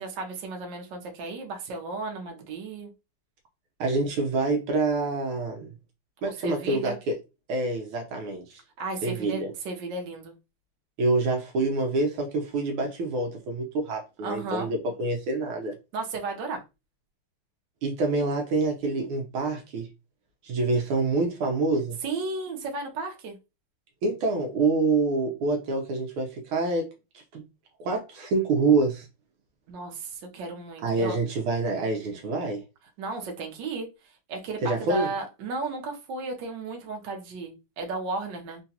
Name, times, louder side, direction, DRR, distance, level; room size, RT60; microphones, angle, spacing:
voice 1, 0.0-2.9 6.2-7.0 8.8-10.3 14.2-14.7 15.9-16.6 22.0-23.3 29.7-31.2 33.0-33.9 34.3-38.6, right 3 dB, 65° right, 1.4 m, -34 dB
voice 2, 3.8-5.7 6.2-7.2 7.5-8.4 9.0-9.5 11.0-15.7 17.8-19.9 20.4-22.0 24.0-26.9 27.3-27.5 27.8-29.1 30.8-32.6 34.6-35.1, right 3 dB, 80° right, 1.5 m, -26 dB
3.8 x 2.3 x 2.7 m
omnidirectional pair, 2.4 m